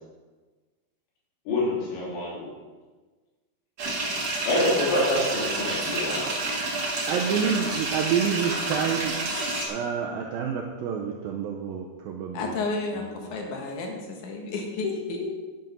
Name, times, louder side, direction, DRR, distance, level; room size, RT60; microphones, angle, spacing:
voice 1, 1.5-2.5 4.5-6.3, left 1 dB, 85° left, -5 dB, 5.4 m, -26 dB
sound 1, 3.8-9.7, right 2 dB, 50° right, 1.6 m, -29 dB
voice 2, 7.1-9.4 9.7-12.5, right 7 dB, 80° right, 1 dB, 2.1 m, -28 dB
voice 3, 9.3-9.7 12.3-15.3, left 3 dB, 60° left, 1 dB, 2.3 m, -32 dB
10.0 x 9.1 x 5.5 m, 1.4 s
omnidirectional pair, 5.1 m